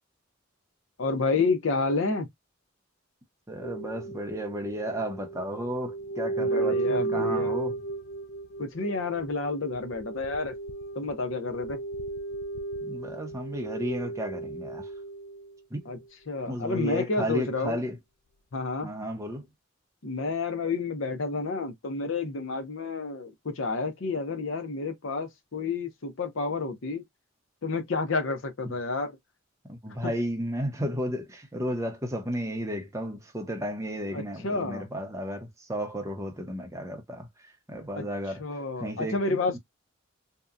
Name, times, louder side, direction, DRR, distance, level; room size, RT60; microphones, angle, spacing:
voice 1, 1.0-2.3 6.4-7.6 8.6-10.5 11.0-11.8 15.9-16.0 16.3-17.8 18.5-18.9 20.0-27.0 27.6-29.2 30.0-30.1 34.1-34.9 38.0-38.1 38.4-39.6, left 3 dB, 70° left, 0.7 m, -30 dB
voice 2, 3.5-7.8 12.8-14.9 15.7-15.9 16.5-18.0 18.8-19.5 29.6-38.4 38.8-39.6, equal, 15° right, 0.6 m, -33 dB
sound 1, 3.6-15.6 15.9-16.0, right 3 dB, 50° left, 0.3 m, -34 dB
2.8 x 2.2 x 2.4 m
head